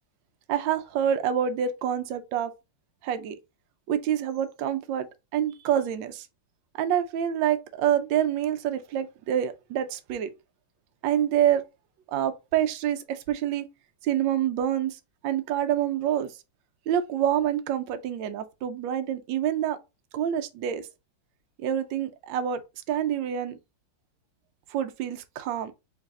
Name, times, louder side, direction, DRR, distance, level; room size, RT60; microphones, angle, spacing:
voice 1, 0.5-2.5 3.0-3.3 3.9-5.1 5.3-6.3 6.8-10.3 11.0-11.6 12.1-13.7 14.0-16.3 16.9-19.8 20.1-20.9 21.6-22.6 22.9-23.6 24.7-25.7, right 10 dB, 75° right, 1.3 m, -27 dB
4.0 x 2.6 x 3.6 m
omnidirectional pair, 2.2 m